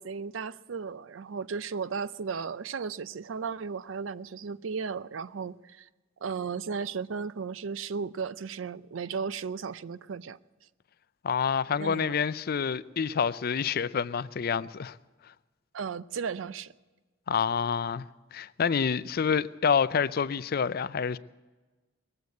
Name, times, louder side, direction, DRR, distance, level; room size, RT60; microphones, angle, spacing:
voice 1, 0.0-5.9 6.2-10.4 11.8-12.2 15.7-16.7, right 5 dB, 85° right, 0.5 m, -35 dB
voice 2, 11.2-15.0 17.3-18.0 18.3-21.2, left 6 dB, 50° left, 0.4 m, -27 dB
20.5 x 7.9 x 8.3 m
head